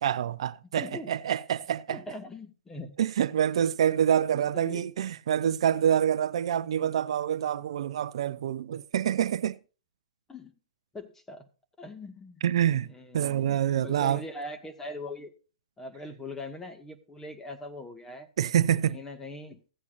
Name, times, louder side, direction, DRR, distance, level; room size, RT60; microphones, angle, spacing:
voice 1, 0.0-2.0 3.0-9.6 12.4-14.2 18.4-19.0, right 9 dB, 60° right, 0.5 m, -26 dB
voice 2, 0.8-1.1 1.9-3.0 4.4-4.9 10.3-10.5 10.9-11.5 11.8-12.4 12.8-15.3 15.8-18.3 18.7-19.6, left 2 dB, 10° left, 2.0 m, -41 dB
16.0 x 8.2 x 2.7 m
hypercardioid pair, 120°, 3 cm